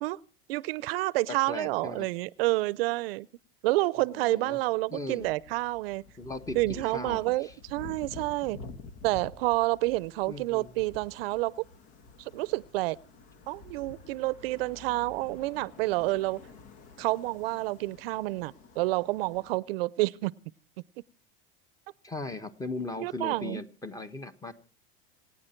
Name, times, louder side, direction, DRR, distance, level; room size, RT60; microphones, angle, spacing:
voice 1, 0.5-3.3 3.6-6.0 6.5-8.6 9.0-11.6 12.2-13.0 13.5-16.4 17.0-20.3 23.0-23.6, right 20 dB, 80° right, 0.6 m, -29 dB
voice 2, 1.3-2.1 4.1-4.6 4.9-5.3 6.2-7.5 10.3-10.7 22.0-24.5, left 2 dB, 10° left, 1.4 m, -38 dB
sound 1, 4.9-19.6, left 3 dB, 55° left, 2.2 m, -49 dB
27.5 x 9.6 x 4.5 m
supercardioid pair, 120°, 29 cm